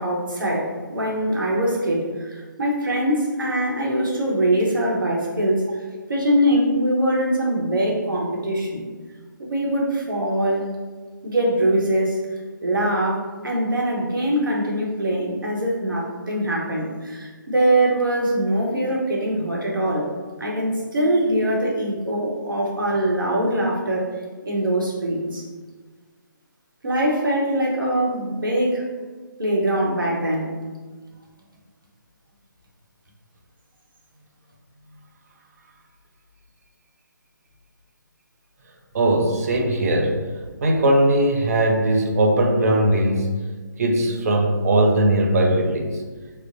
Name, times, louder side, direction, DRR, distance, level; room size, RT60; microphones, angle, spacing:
voice 1, 0.0-5.7 6.1-8.8 9.4-10.7 11.2-12.2 12.6-20.1 20.4-24.1 24.4-25.4 26.8-28.9 29.4-30.6, right 1 dB, 75° right, -2 dB, 1.0 m, -22 dB
voice 2, 38.9-40.2 40.6-43.3 43.8-46.0, right 1 dB, 45° right, 1 dB, 0.5 m, -19 dB
4.9 x 2.1 x 2.6 m, 1.4 s
figure-of-eight pair, 150°, 11 cm